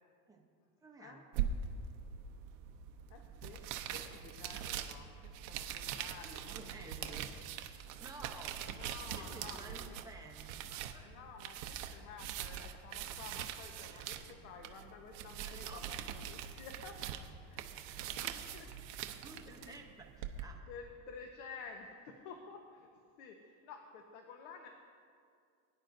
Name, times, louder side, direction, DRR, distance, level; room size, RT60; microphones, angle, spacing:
voice 1, 0.8-1.2 5.9-7.3 8.0-8.8 9.1-11.1 13.8-14.0 15.4-15.8 19.1-20.6, right 3 dB, 10° right, 1 dB, 0.7 m, -53 dB
sound 1, 1.3-20.4, right 9 dB, 60° right, 0.8 m, -43 dB
voice 2, 3.1-3.6 3.9-7.3 8.7-10.0 11.0-17.0 17.5-18.7 19.1-19.2 19.6-19.8 20.5-22.9 23.2-24.7, left 5 dB, 70° left, 3 dB, 1.1 m, -52 dB
21.0 x 10.5 x 2.6 m, 2.2 s
cardioid pair, 175°, 41 cm